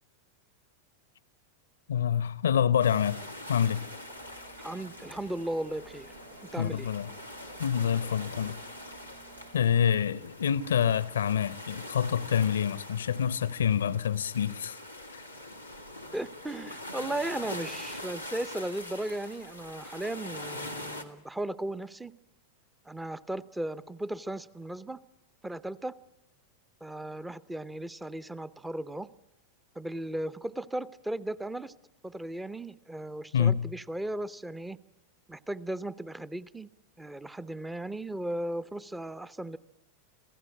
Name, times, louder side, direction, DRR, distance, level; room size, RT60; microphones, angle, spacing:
voice 1, 1.9-3.8 6.6-7.1 7.6-8.6 9.5-14.8 33.3-33.6, left 8 dB, 65° left, 0.7 m, -27 dB
sound 1, 2.8-21.0, left 1 dB, 90° right, 1.8 m, -43 dB
sound 2, 3.6-9.8, right 4 dB, 65° right, 3.0 m, -54 dB
voice 2, 4.6-6.1 6.5-6.9 16.1-22.1 22.9-25.0 25.4-25.9 26.8-29.1 29.8-31.7 32.0-34.8 35.3-36.7 37.0-39.6, right 1 dB, 5° right, 0.8 m, -36 dB
26.5 x 16.5 x 8.7 m
figure-of-eight pair, 90°, 0 cm